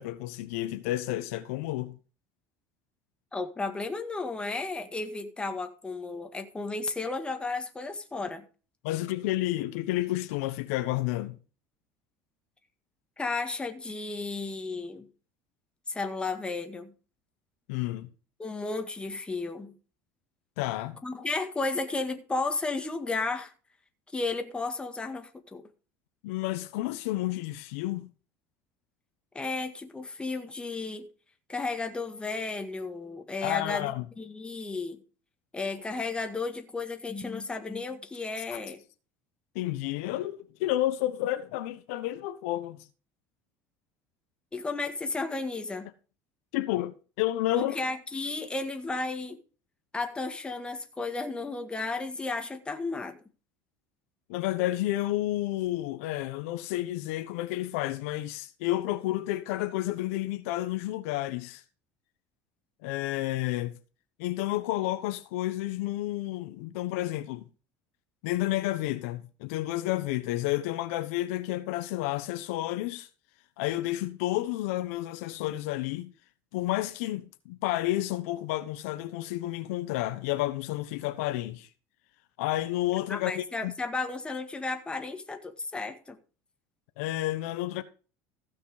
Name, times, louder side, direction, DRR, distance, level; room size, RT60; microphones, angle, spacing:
voice 1, 0.0-2.0 8.8-11.4 17.7-18.1 20.6-21.0 26.2-28.1 33.4-34.1 38.4-38.6 39.5-42.8 46.5-47.8 54.3-61.6 62.8-63.8 64.2-67.5 68.2-73.1 73.6-76.1 76.5-81.7 82.4-83.7 87.0-87.8, left 16 dB, 85° left, 1.0 m, -31 dB
voice 2, 3.3-8.4 13.2-15.1 15.9-16.9 18.4-19.8 21.0-23.5 24.1-25.6 29.3-31.1 31.5-33.9 34.2-35.0 35.5-38.8 44.5-45.9 47.5-49.4 49.9-53.2 83.1-86.2, left 3 dB, 15° left, 1.9 m, -33 dB
15.5 x 6.1 x 4.9 m
supercardioid pair, 115°, 7 cm